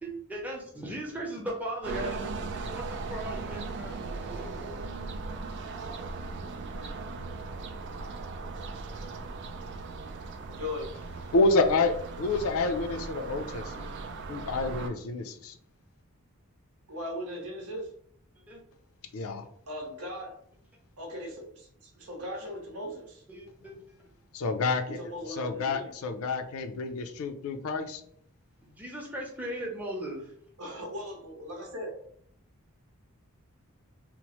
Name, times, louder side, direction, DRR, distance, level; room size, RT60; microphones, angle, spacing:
voice 1, 0.0-2.3 2.7-4.8 18.5-18.6 23.3-23.7 28.6-30.2, right 1 dB, 5° right, -2 dB, 0.6 m, -38 dB
sound 1, 1.8-14.9, right 3 dB, 50° right, 0.3 m, -38 dB
voice 2, 10.4-10.9 16.9-17.9 19.7-20.4 21.0-23.2 25.0-26.0 30.6-32.0, left 1 dB, 80° right, 1 dB, 0.8 m, -38 dB
voice 3, 11.3-13.9 14.3-15.5 19.1-19.4 24.3-25.0 25.4-28.0, left 3 dB, 65° left, 7 dB, 0.4 m, -28 dB
2.9 x 2.0 x 2.9 m, 0.66 s
head